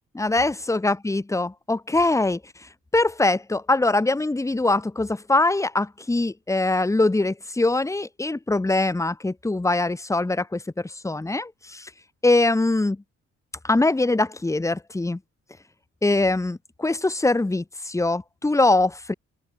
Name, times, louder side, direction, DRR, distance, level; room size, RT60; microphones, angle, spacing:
voice 1, 0.1-2.4 2.9-11.9 12.2-13.0 13.6-15.2 16.0-19.1, left 2 dB, 10° left, 1.0 m, -22 dB
open air
cardioid pair, 90°, 30 cm